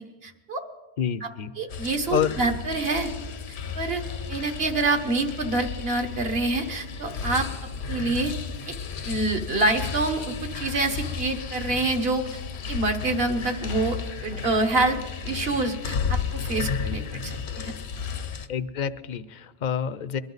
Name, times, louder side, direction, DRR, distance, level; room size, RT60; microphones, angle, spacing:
voice 1, 0.2-0.6 1.6-3.1 3.7-4.0 4.3-7.5 7.9-8.3 9.0-12.3 12.7-15.0 15.2-17.7, right 2 dB, 65° right, 4 dB, 1.6 m, -26 dB
voice 2, 1.0-1.5 2.1-2.4 18.5-20.2, left 8 dB, 50° left, 14 dB, 0.6 m, -28 dB
sound 1, 1.7-18.5, left 6 dB, 75° left, 1.1 m, -33 dB
22.0 x 12.5 x 4.0 m, 1.2 s
omnidirectional pair, 1.1 m